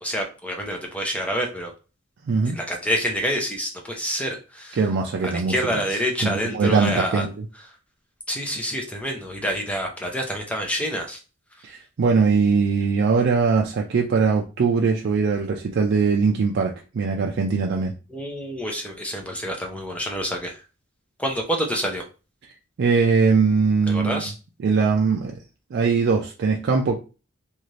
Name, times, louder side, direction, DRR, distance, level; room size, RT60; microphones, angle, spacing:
voice 1, 0.0-1.7 2.5-4.8 5.2-7.2 8.3-11.2 18.1-20.6 21.2-22.0 23.9-24.3, equal, 5° left, 2 dB, 0.6 m, -27 dB
voice 2, 4.7-5.8 6.2-7.5 11.6-17.9 22.8-24.2 24.6-25.4 25.7-27.0, right 5 dB, 60° right, 1 dB, 0.4 m, -21 dB
2.7 x 2.4 x 3.1 m, 0.33 s
head